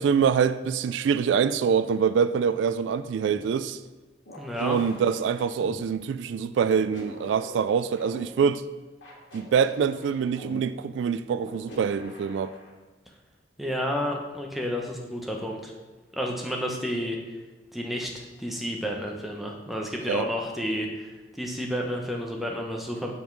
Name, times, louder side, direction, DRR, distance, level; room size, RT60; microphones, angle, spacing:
voice 1, 0.0-3.8 4.6-8.6 9.3-12.5 20.1-20.3, right 6 dB, 85° right, 0.3 m, -25 dB
sound 1, 3.2-3.4 4.3-5.8 6.6-8.2 9.0-10.5 11.4-12.7, equal, 90° left, 2.0 m, -45 dB
voice 2, 4.4-4.8 13.6-15.7 16.1-17.2 17.7-23.1, equal, ahead, 0.8 m, -31 dB
7.1 x 5.4 x 4.6 m
head